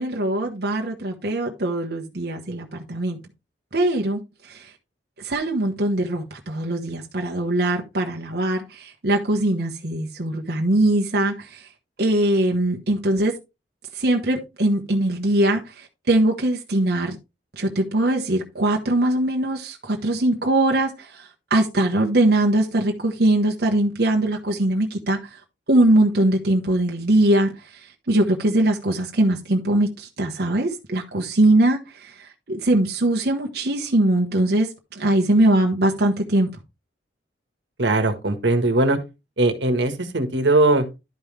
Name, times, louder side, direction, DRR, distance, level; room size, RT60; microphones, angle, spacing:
voice 1, 0.0-3.2 3.7-4.7 5.2-11.7 12.0-13.3 13.9-17.2 17.6-25.4 25.7-36.5, right 1 dB, 60° right, 1.1 m, -21 dB
voice 2, 37.8-39.0 39.4-40.8, right 2 dB, 85° right, 1.5 m, -20 dB
11.5 x 5.5 x 3.3 m
head